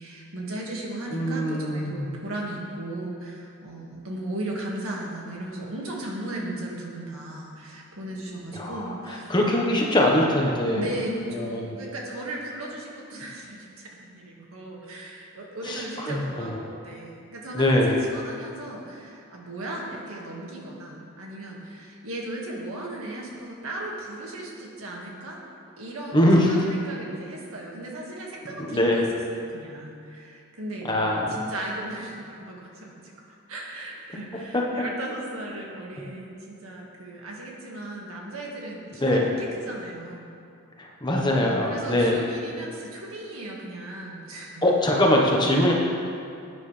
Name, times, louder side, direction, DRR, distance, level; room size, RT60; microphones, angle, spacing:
voice 1, 0.0-9.3 10.8-25.4 25.8-40.3 41.6-44.7, right 1 dB, 70° right, -2 dB, 2.0 m, -36 dB
voice 2, 1.1-2.1 8.5-8.8 9.3-10.8 11.4-11.6 15.7-16.5 17.5-17.9 26.1-26.5 28.7-29.0 30.9-31.4 39.0-39.2 41.0-42.2 44.6-45.7, left 1 dB, 20° left, -2 dB, 1.2 m, -22 dB
16.5 x 9.4 x 3.4 m, 2.5 s
head